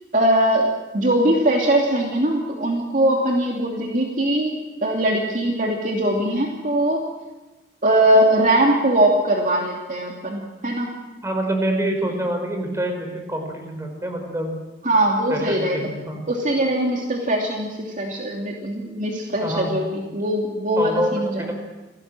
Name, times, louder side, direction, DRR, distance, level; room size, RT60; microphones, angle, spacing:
voice 1, 0.1-7.0 7.8-10.9 14.8-15.8 16.3-21.5, right 1 dB, 45° right, 0 dB, 2.8 m, -21 dB
voice 2, 11.2-14.5 15.3-16.2 19.4-19.7 20.8-21.1 21.4-21.5, right 1 dB, 15° right, 3 dB, 5.1 m, -26 dB
28.0 x 18.0 x 7.8 m, 1.1 s
head